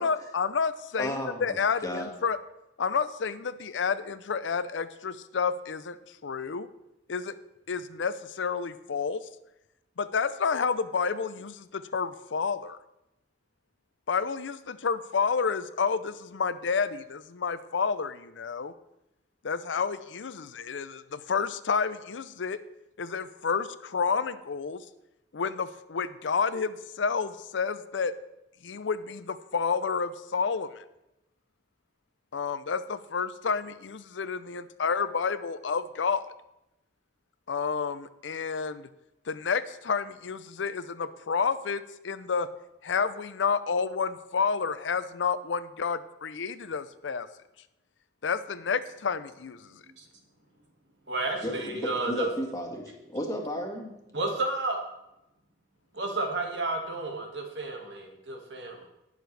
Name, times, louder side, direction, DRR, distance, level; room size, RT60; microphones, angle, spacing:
voice 1, 0.0-2.4 2.8-6.0 6.2-6.7 7.1-7.3 7.7-9.3 10.0-12.8 14.1-18.7 19.4-22.6 23.0-24.8 25.3-28.1 28.6-30.8 32.3-36.2 37.5-38.9 39.3-42.5 42.8-47.3 48.2-49.8, left 5 dB, 85° left, 13 dB, 0.6 m, -30 dB
voice 2, 1.0-1.6 1.8-2.1 51.4-53.9, equal, 20° left, 0 dB, 1.8 m, -34 dB
voice 3, 51.1-52.3 54.1-54.8 55.9-58.9, right 2 dB, 70° right, 2 dB, 1.8 m, -31 dB
18.5 x 6.6 x 3.3 m, 0.90 s
head